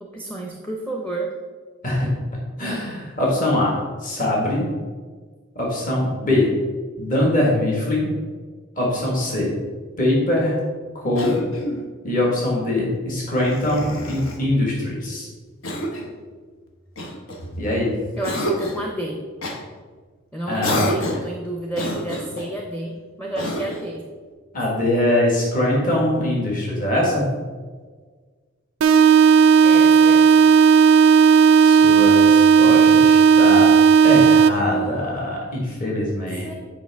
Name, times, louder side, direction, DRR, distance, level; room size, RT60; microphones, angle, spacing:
voice 1, 0.0-1.3 18.2-19.2 20.3-24.0 29.6-30.4 36.4-36.5, right 1 dB, 10° left, -1 dB, 0.7 m, -31 dB
voice 2, 2.6-4.7 5.5-6.5 7.0-8.1 8.8-9.5 10.0-10.5 10.9-11.4 12.0-15.3 17.6-17.9 20.5-20.8 24.5-27.2 31.6-33.7 34.0-36.5, left 1 dB, 45° left, -3 dB, 1.6 m, -22 dB
Cough, 11.1-11.9 13.3-14.4 15.6-16.2 17.0-17.8 18.2-18.9 19.4-19.6 20.6-21.3 21.7-22.5 23.3-23.9, left 1 dB, 80° left, 1.1 m, -28 dB
sound 1, 28.8-34.8, right 6 dB, 90° right, 0.5 m, -13 dB
8.9 x 5.1 x 3.5 m, 1.5 s
head